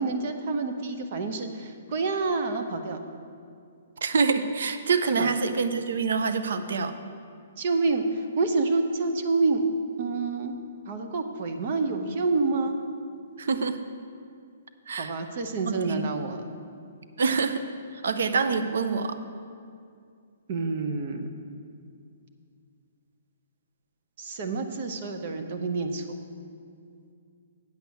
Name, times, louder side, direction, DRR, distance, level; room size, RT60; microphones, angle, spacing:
voice 1, 0.0-3.0 5.1-5.3 7.6-8.0 8.4-9.6 10.0-10.5 10.9-12.7 15.0-16.4 20.5-21.3 24.2-26.0, right 3 dB, 45° right, 6 dB, 0.8 m, -28 dB
voice 2, 4.0-6.9 13.4-13.8 14.9-15.1 15.7-16.1 17.2-17.6 18.0-19.2, right 5 dB, 70° right, 9 dB, 0.6 m, -26 dB
8.5 x 6.2 x 7.0 m, 2.3 s
hypercardioid pair, 160°, 0 cm